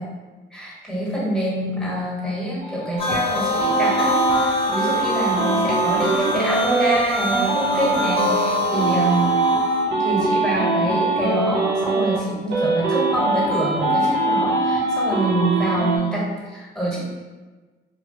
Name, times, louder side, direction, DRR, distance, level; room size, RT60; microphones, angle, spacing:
voice 1, 0.5-9.4 10.0-17.0, right 1 dB, 5° left, -7 dB, 1.3 m, -25 dB
sound 1, 2.6-7.0 7.3-12.2 12.5-16.0, right 3 dB, 60° right, 0.6 m, -22 dB
sound 2, 3.0-9.8, left 2 dB, 30° left, 0.6 m, -26 dB
3.0 x 2.3 x 2.8 m, 1.3 s
cardioid pair, 90°, 20 cm